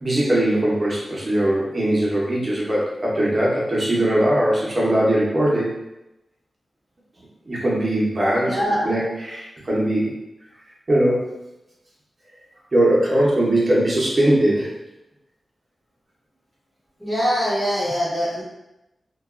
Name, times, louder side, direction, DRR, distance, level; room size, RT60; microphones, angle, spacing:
voice 1, 0.0-5.7 7.5-8.5 8.8-9.0 9.2-10.1 10.9-11.3 12.7-14.8, right 1 dB, 35° right, -6 dB, 0.8 m, -20 dB
voice 2, 8.3-8.9 17.0-18.4, equal, ahead, -10 dB, 0.9 m, -23 dB
2.6 x 2.3 x 2.4 m, 0.93 s
wide cardioid pair, 95°, 0 cm